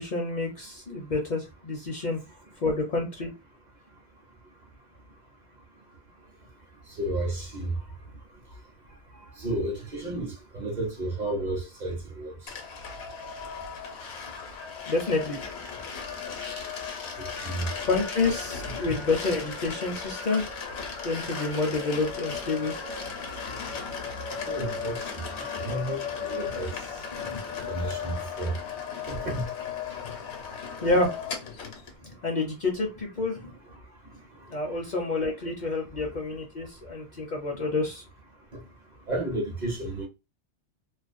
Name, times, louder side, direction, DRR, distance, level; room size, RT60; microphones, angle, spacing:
voice 1, 0.0-2.2 2.6-3.3 14.9-15.4 17.8-20.4 21.0-22.7 27.1-27.4 28.0-28.1 30.8-31.1 32.2-33.5 34.5-38.0, left 3 dB, 50° left, 0.6 m, -28 dB
voice 2, 7.0-7.7 9.4-12.3 17.4-17.7 18.8-18.9 24.5-25.0 25.6-26.7 27.7-28.5 29.1-29.4 39.1-40.1, right 1 dB, 50° right, 0.7 m, -31 dB
sound 1, 12.5-31.9, left 6 dB, 75° left, 0.9 m, -36 dB
2.4 x 2.1 x 2.5 m
omnidirectional pair, 1.1 m